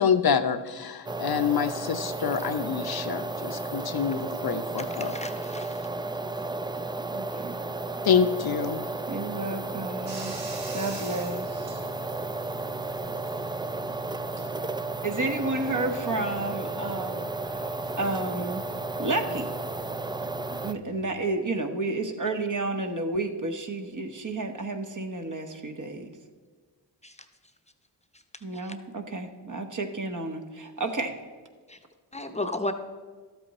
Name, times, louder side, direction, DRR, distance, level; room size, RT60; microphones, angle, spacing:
voice 1, 0.0-5.1 8.0-8.8, left 7 dB, 55° left, 9 dB, 0.7 m, -26 dB
sound 1, 1.1-20.7, right 3 dB, 10° right, 0.3 m, -33 dB
voice 2, 5.0-5.8 27.0-27.1 31.7-31.8 32.1-32.7, left 2 dB, 15° left, 6 dB, 0.7 m, -33 dB
voice 3, 7.1-7.6 9.1-10.4 10.7-11.8 15.0-17.3 17.6-18.7 19.0-19.5 20.6-26.2 28.4-31.1, right 2 dB, 45° right, 5 dB, 1.1 m, -31 dB
Bathtub (filling or washing), 10.1-21.2, left 1 dB, 85° right, 1.7 m, -47 dB
12.0 x 7.9 x 4.2 m, 1.5 s
cardioid pair, 55°, 43 cm